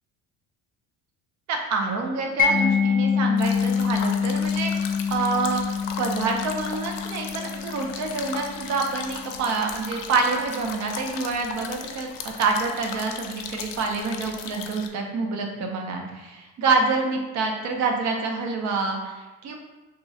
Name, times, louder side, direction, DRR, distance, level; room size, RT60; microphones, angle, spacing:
voice 1, 1.5-19.6, right 4 dB, 50° right, 2 dB, 0.7 m, -27 dB
Mallet percussion, 2.4-9.2, left 6 dB, 25° left, 0.5 m, -26 dB
sound 1, 3.4-14.9, left 6 dB, 90° left, 0.5 m, -37 dB
3.0 x 2.3 x 4.0 m, 1.1 s
cardioid pair, 140°, 35 cm